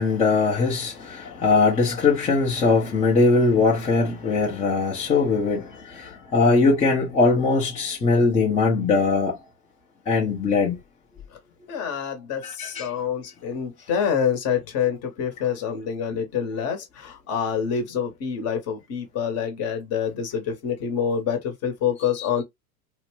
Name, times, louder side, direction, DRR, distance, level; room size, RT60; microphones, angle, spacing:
voice 1, 0.0-9.4 10.1-10.8 12.4-12.9 22.2-22.3, left 3 dB, 15° left, 0.6 m, -21 dB
voice 2, 11.7-22.4, left 7 dB, 35° left, 1.0 m, -27 dB
2.7 x 2.1 x 3.1 m
hypercardioid pair, 95°, 45 cm